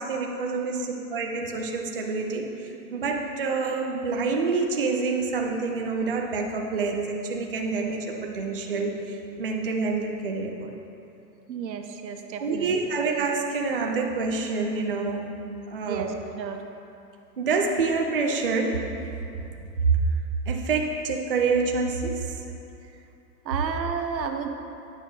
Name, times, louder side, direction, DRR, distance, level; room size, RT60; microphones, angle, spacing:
voice 1, 0.0-10.7 12.4-15.3 15.7-16.1 17.4-18.8 19.5-20.0 20.5-22.4, right 4 dB, 35° right, 1 dB, 0.4 m, -27 dB
voice 2, 11.5-12.7 15.8-16.6 23.4-24.5, right 6 dB, 90° right, 5 dB, 1.0 m, -32 dB
9.1 x 6.2 x 3.9 m, 2.8 s
hypercardioid pair, 170°, 49 cm